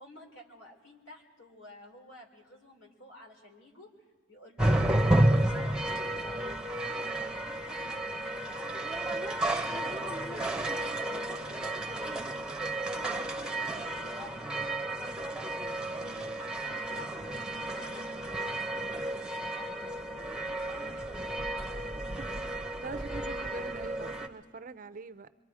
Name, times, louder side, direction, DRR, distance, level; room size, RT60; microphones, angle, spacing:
voice 1, 0.0-3.9 4.3-8.0 8.3-9.2 9.8-15.4 15.9-17.1 17.4-18.4 19.0-20.2 20.5-21.5, left 1 dB, 80° left, 2 dB, 3.3 m, -52 dB
sound 1, 4.6-24.3, right 1 dB, 5° right, 0.9 m, -32 dB
voice 2, 22.2-25.3, right 4 dB, 45° right, 13 dB, 0.5 m, -44 dB
26.0 x 23.0 x 4.9 m, 1.4 s
head